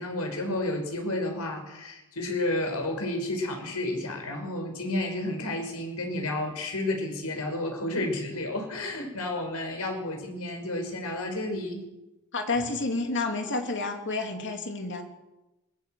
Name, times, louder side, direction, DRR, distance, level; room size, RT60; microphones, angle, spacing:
voice 1, 0.0-11.8, left 1 dB, 90° left, 3 dB, 5.6 m, -31 dB
voice 2, 12.3-15.0, left 3 dB, 55° left, 4 dB, 3.1 m, -30 dB
21.5 x 16.0 x 7.9 m, 0.99 s
head